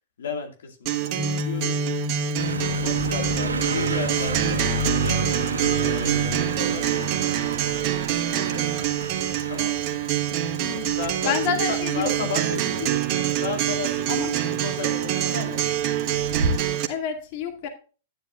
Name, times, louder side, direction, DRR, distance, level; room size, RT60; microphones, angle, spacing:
voice 1, 0.2-1.8 2.8-4.7 4.9-5.2 5.5-7.2 8.3-8.7 9.5-9.8 11.0-13.0 13.4-15.9, left 5 dB, 75° left, 2.2 m, -34 dB
Acoustic guitar, 0.9-16.9, right 12 dB, 45° right, 1.3 m, -26 dB
sound 1, 1.2-6.3, left 3 dB, 10° left, 0.5 m, -31 dB
sound 2, 2.4-16.7, right 3 dB, 90° right, 1.3 m, -31 dB
voice 2, 10.6-11.0 11.3-12.3 14.1-14.3 16.9-17.7, left 7 dB, 50° left, 2.1 m, -29 dB
10.5 x 10.0 x 2.4 m
hypercardioid pair, 115°, 0 cm